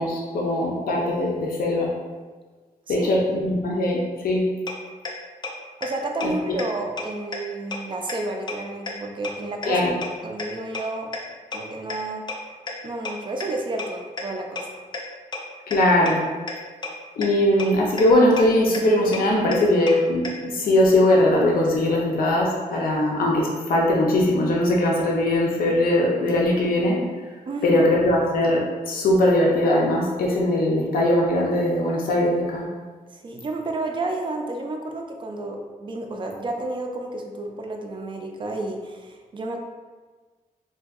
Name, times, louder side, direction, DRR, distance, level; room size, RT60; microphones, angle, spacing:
voice 1, 0.0-1.9 2.9-4.5 6.2-6.3 9.6-9.9 15.7-16.2 17.2-27.0 27.6-32.7, left 1 dB, 85° left, -3 dB, 0.6 m, -20 dB
sound 1, 4.7-4.8 5.0-5.1 5.4-5.5 5.8-5.9 6.2-6.3 6.6-6.7 7.0-7.1 7.3-7.4 7.7-7.8 8.1-8.2 8.5-8.6 8.9-9.0 9.2-9.3 9.6-9.7 10.0-10.1 10.4-10.5 10.7-10.8 11.1-11.2 11.5-11.6 11.9-12.0 12.3-12.4 12.7-12.8 13.0-13.1 13.4-13.5 13.8-13.9 14.2-14.3 14.6-14.7 14.9-15.0 15.3-15.4 15.7-15.8 16.1-16.2 16.5-16.6 16.8-16.9 17.2-17.3 17.6-17.7 18.0-18.1 18.4-18.5 18.7-18.8 19.1-19.2 19.5-19.6 19.9-20.0 20.2-20.3, left 4 dB, 30° left, 0.4 m, -30 dB
voice 2, 5.8-9.8 10.2-11.1 11.5-12.2 12.8-14.7 27.5-27.9 33.1-39.6, right 2 dB, 35° right, 2 dB, 0.4 m, -31 dB
3.7 x 2.6 x 2.4 m, 1.4 s
wide cardioid pair, 160°, 15 cm